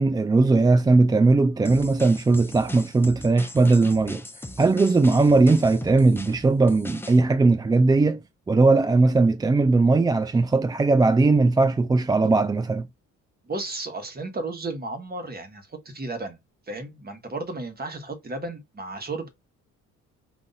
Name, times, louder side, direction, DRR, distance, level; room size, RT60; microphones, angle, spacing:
voice 1, 0.0-4.2 4.6-8.2 8.5-12.9, right 3 dB, 15° right, 0.3 m, -19 dB
sound 1, 1.7-7.2, left 1 dB, 10° left, 0.7 m, -40 dB
voice 2, 13.5-16.4 16.7-19.3, right 2 dB, 30° right, 1.4 m, -33 dB
4.1 x 2.7 x 3.9 m
cardioid pair, 90°, 30 cm